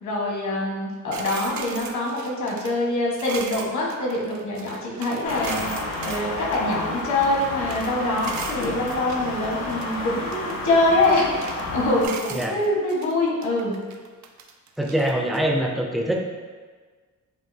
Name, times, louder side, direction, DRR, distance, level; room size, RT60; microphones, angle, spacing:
voice 1, 0.0-5.7 6.0-13.8, left 2 dB, 60° left, -3 dB, 1.2 m, -24 dB
sound 1, 1.1-6.2 6.5-7.9 8.2-10.0 10.3-11.7 12.0-13.2 13.4-15.4, right 6 dB, 60° right, 0.5 m, -38 dB
sound 2, 5.2-12.1, left 2 dB, 90° left, 1.0 m, -31 dB
voice 2, 14.8-16.2, right 1 dB, ahead, 0 dB, 0.4 m, -23 dB
7.3 x 2.5 x 2.7 m, 1.4 s
wide cardioid pair, 150°, 32 cm